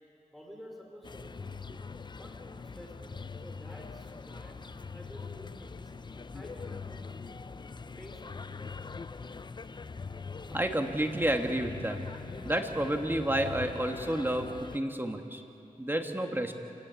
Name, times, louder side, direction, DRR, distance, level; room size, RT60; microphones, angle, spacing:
voice 1, 0.3-1.6 2.1-2.4 2.6-4.6 4.9-5.9 6.3-7.2 8.0-8.5, equal, ahead, 0 dB, 5.2 m, -51 dB
sound 1, 1.0-14.8, left 4 dB, 35° left, 0.6 m, -42 dB
voice 2, 10.5-12.0 12.4-15.4 15.8-16.5, right 1 dB, 15° right, 4 dB, 2.0 m, -30 dB
26.5 x 19.0 x 8.5 m, 2.7 s
wide cardioid pair, 85°, 14 cm